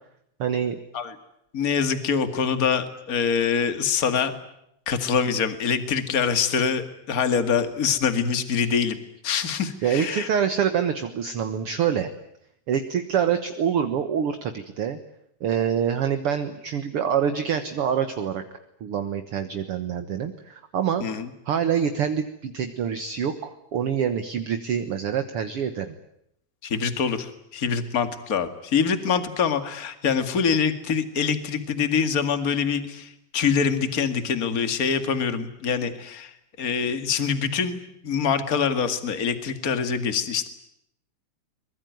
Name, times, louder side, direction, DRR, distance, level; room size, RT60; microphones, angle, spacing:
voice 1, 0.4-0.8 9.8-12.1 12.7-15.0 15.4-18.4 18.8-25.9, right 8 dB, 55° right, 8 dB, 2.0 m, -26 dB
voice 2, 1.5-4.3 4.9-9.0 9.2-10.3 21.0-21.3 26.6-36.3 36.6-40.5, left 6 dB, 35° left, 9 dB, 2.2 m, -25 dB
24.0 x 22.0 x 9.5 m, 0.78 s
omnidirectional pair, 3.3 m